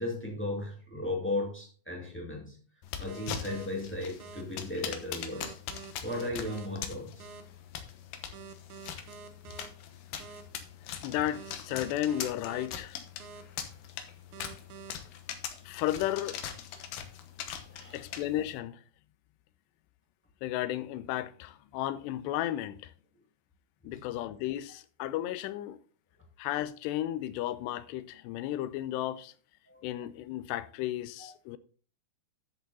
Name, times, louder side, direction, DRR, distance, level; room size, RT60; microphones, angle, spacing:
voice 1, 0.0-2.6 3.0-5.5 6.0-7.3 17.6-18.1 23.9-24.0 29.7-29.8 31.2-31.3, left 2 dB, 10° left, 0.6 m, -36 dB
sound 1, 2.8-18.6, left 9 dB, 70° left, 2.4 m, -42 dB
sound 2, 3.1-3.7 4.2-4.4 5.3-6.7 7.2-7.4 8.3-9.7 10.2-10.4 11.3-12.7 13.2-13.4 14.3-14.9, right 6 dB, 70° right, 1.9 m, -47 dB
voice 2, 11.0-13.0 15.7-16.4 17.9-18.8 20.4-22.9 23.9-25.8 26.4-29.3 29.8-31.6, left 13 dB, 85° left, 2.7 m, -33 dB
10.5 x 7.3 x 4.1 m
omnidirectional pair, 5.0 m